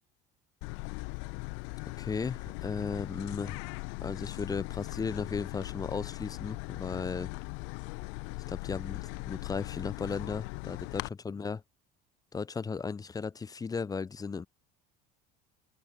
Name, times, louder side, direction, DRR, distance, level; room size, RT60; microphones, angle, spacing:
sound 1, 0.6-11.1, left 40 dB or more, 80° left, 0.6 m, -39 dB
voice 1, 2.0-3.6 4.0-7.3 8.5-11.6 12.3-14.5, left 5 dB, 20° left, 1.0 m, -36 dB
cardioid pair, 115°, 19 cm